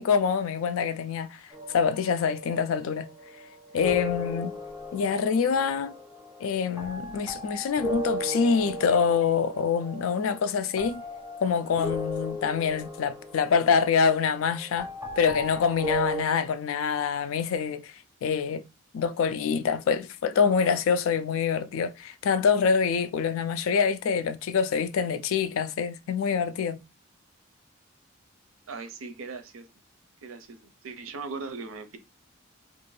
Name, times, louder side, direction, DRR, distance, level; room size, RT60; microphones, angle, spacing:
voice 1, 0.0-1.4 1.7-3.1 3.7-4.5 4.9-5.9 6.4-11.0 11.4-14.9 15.2-17.9 18.2-18.6 18.9-26.8, left 6 dB, 85° left, 0.3 m, -25 dB
sound 1, 1.5-16.2, equal, 15° right, 0.5 m, -37 dB
voice 2, 28.7-29.7 30.2-32.0, right 4 dB, 90° right, 0.5 m, -39 dB
2.5 x 2.4 x 3.2 m
head